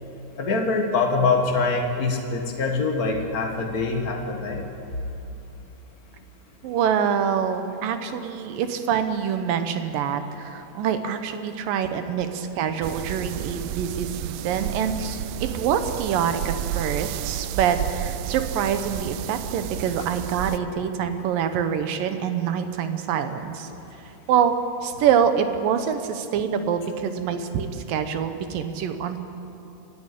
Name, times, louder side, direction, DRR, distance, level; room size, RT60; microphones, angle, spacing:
voice 1, 0.4-4.6, left 3 dB, 70° left, 2 dB, 0.8 m, -24 dB
voice 2, 6.6-23.7 24.3-24.5 24.8-29.2, right 8 dB, 70° right, 8 dB, 2.5 m, -25 dB
sound 1, 12.8-20.6, right 12 dB, 90° right, 1.9 m, -32 dB
28.0 x 12.0 x 8.4 m, 2.9 s
omnidirectional pair, 4.6 m